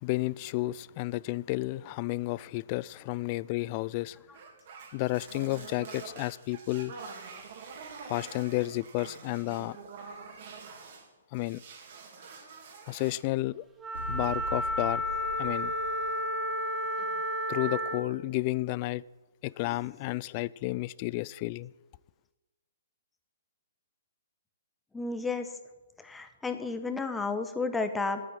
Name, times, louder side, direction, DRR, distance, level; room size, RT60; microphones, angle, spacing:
voice 1, 0.0-4.2 4.9-6.9 8.0-9.8 11.3-11.6 12.9-13.6 14.1-15.0 15.4-15.7 17.5-19.0 19.4-21.7, left 19 dB, 35° left, 0.3 m, -31 dB
sound 1, 4.3-11.1 11.3-13.3, right 5 dB, 50° right, 2.9 m, -46 dB
Wind instrument woodwind instrument, 13.8-18.1, equal, 10° right, 1.3 m, -32 dB
Bright Cinematic Boom (Fast Reverb), 13.9-16.7, right 2 dB, 70° right, 2.8 m, -40 dB
voice 2, 24.9-25.5 26.0-28.2, left 3 dB, 5° left, 1.1 m, -32 dB
9.3 x 8.5 x 9.7 m
hypercardioid pair, 140°, 0 cm